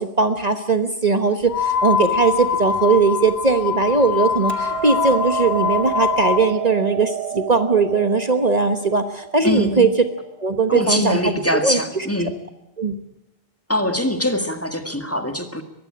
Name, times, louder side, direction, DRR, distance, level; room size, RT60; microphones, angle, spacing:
voice 1, 0.0-9.9 10.4-11.3 11.6-12.0 12.8-13.0, right 4 dB, 40° right, 9 dB, 1.3 m, -19 dB
sound 1, 1.5-6.4, left 7 dB, 90° left, 2.6 m, -23 dB
Hammer, 4.5-10.7, right 12 dB, 90° right, 1.9 m, -31 dB
voice 2, 9.4-9.9 10.7-12.4 13.7-15.6, left 1 dB, 15° left, 8 dB, 1.9 m, -23 dB
22.5 x 15.5 x 8.7 m, 0.89 s
omnidirectional pair, 1.0 m